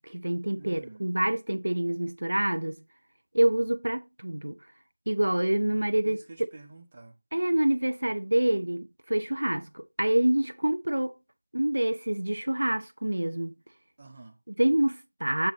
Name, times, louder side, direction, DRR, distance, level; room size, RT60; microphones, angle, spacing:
voice 1, 0.0-2.8 3.3-4.6 5.1-6.2 7.3-11.1 11.5-13.5 14.5-15.5, right 1 dB, 65° right, 0.7 m, -26 dB
voice 2, 0.6-1.0 6.0-7.2 14.0-14.4, right 3 dB, 20° right, 0.8 m, -48 dB
7.6 x 7.0 x 3.0 m
figure-of-eight pair, 180°, 0 cm